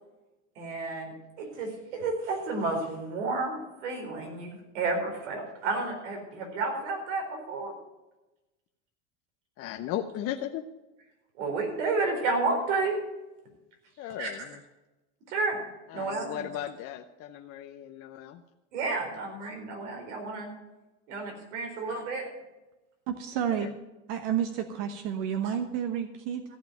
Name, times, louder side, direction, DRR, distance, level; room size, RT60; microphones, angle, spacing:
voice 1, 0.6-7.7 11.4-12.9 14.2-14.5 15.3-15.6 15.9-16.5 18.7-20.5 21.1-22.2 25.4-25.5, right 3 dB, 80° right, 2 dB, 4.3 m, -31 dB
voice 2, 9.6-10.6 14.0-14.6 15.9-18.4 23.5-23.7, left 11 dB, 40° left, 6 dB, 0.7 m, -36 dB
voice 3, 23.1-23.7 24.1-26.4, right 9 dB, 60° right, 7 dB, 1.1 m, -30 dB
14.5 x 5.7 x 9.1 m, 1.0 s
supercardioid pair, 130°, 36 cm